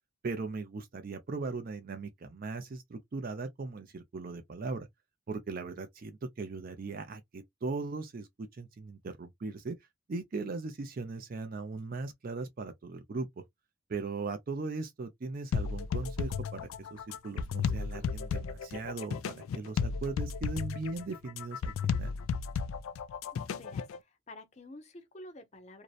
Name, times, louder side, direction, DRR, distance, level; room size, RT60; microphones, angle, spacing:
voice 1, 0.2-4.9 5.3-9.8 10.1-13.4 13.9-22.1, right 3 dB, 45° right, 0.4 m, -39 dB
sound 1, 15.5-24.0, left 6 dB, 90° left, 0.3 m, -34 dB
voice 2, 23.3-25.8, left 1 dB, 35° left, 0.6 m, -50 dB
2.6 x 2.0 x 2.3 m
head